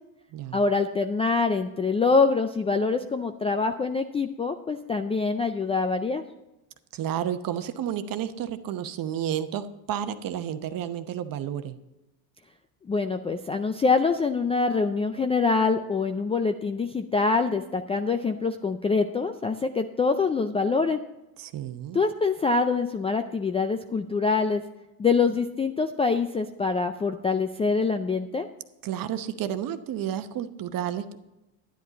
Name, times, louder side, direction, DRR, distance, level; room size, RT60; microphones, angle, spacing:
voice 1, 0.5-6.2 12.9-21.0 21.9-24.6 25.0-28.5, left 4 dB, 15° left, 7 dB, 0.3 m, -25 dB
voice 2, 6.9-11.8 21.4-22.0 28.8-31.2, right 10 dB, 45° right, 10 dB, 0.9 m, -31 dB
10.5 x 10.0 x 4.0 m, 0.96 s
supercardioid pair, 95°, 47 cm